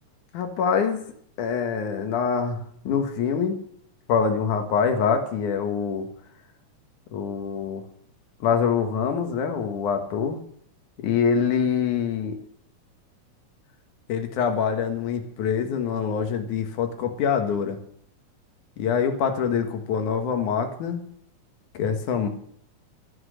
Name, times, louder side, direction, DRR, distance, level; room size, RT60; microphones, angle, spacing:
voice 1, 0.3-1.0 1.4-2.6 2.8-3.6 4.1-6.1 7.1-7.8 8.4-10.4 11.0-12.4 14.1-17.8 18.8-21.0 21.7-22.3, left 6 dB, 75° left, 6 dB, 3.0 m, -25 dB
13.5 x 11.5 x 6.5 m, 0.67 s
omnidirectional pair, 3.6 m